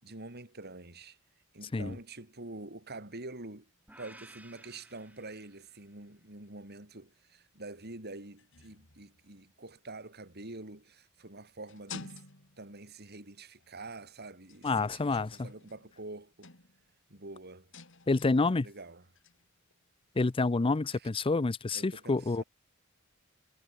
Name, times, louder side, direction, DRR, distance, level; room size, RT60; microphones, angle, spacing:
voice 1, 0.0-1.2 1.5-3.7 4.0-12.2 12.6-16.5 17.1-17.7 18.6-19.0 21.0-21.1 21.7-22.4, right 2 dB, 50° right, 4.1 m, -46 dB
sound 1, 3.6-9.8 10.9-13.0 13.6-14.0 14.5-17.0 17.5-19.9, left 4 dB, 65° left, 3.9 m, -53 dB
sound 2, 3.9-6.1, right 1 dB, 5° right, 5.7 m, -55 dB
voice 2, 14.6-15.5 18.1-18.7 20.2-22.4, left 3 dB, 25° left, 0.5 m, -28 dB
head